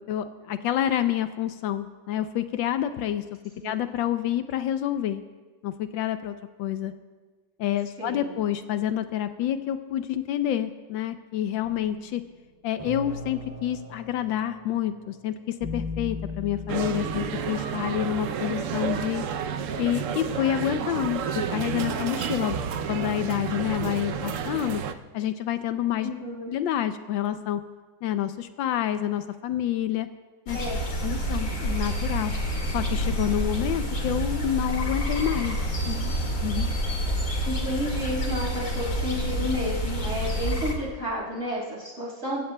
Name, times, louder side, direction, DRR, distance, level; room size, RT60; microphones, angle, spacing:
voice 1, 0.0-3.2 3.6-5.2 5.6-6.9 7.6-12.2 12.6-19.3 19.8-22.6 22.9-24.8 25.1-26.1 26.5-27.6 28.0-30.1 30.5-30.6 31.0-32.3 32.7-35.6 35.9-36.2 36.4-36.7, left 11 dB, 80° left, 10 dB, 1.3 m, -28 dB
voice 2, 8.0-8.3 26.0-26.5 30.5-30.8 37.4-42.4, left 1 dB, 40° right, -5 dB, 6.1 m, -31 dB
sound 1, 11.6-17.5, left 3 dB, 20° right, 1.6 m, -38 dB
sound 2, 16.7-24.9, right 7 dB, 80° right, 0.7 m, -30 dB
sound 3, 30.5-40.7, equal, 40° left, 2.2 m, -28 dB
26.0 x 15.5 x 2.2 m, 1.3 s
omnidirectional pair, 2.1 m